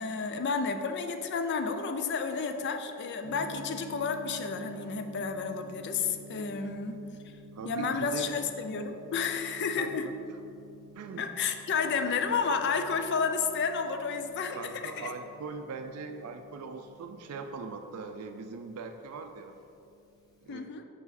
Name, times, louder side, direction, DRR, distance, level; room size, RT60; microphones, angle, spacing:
voice 1, 0.0-7.0 7.6-10.1 11.2-15.1 20.5-20.8, left 5 dB, 50° left, 7 dB, 0.4 m, -31 dB
Gong, 3.2-20.5, equal, 15° left, 0.9 m, -51 dB
voice 2, 6.4-6.7 7.5-8.3 9.8-10.1 10.9-11.3 14.5-19.6 20.4-20.7, right 4 dB, 80° right, 6 dB, 0.4 m, -41 dB
5.5 x 4.8 x 4.1 m, 2.7 s
head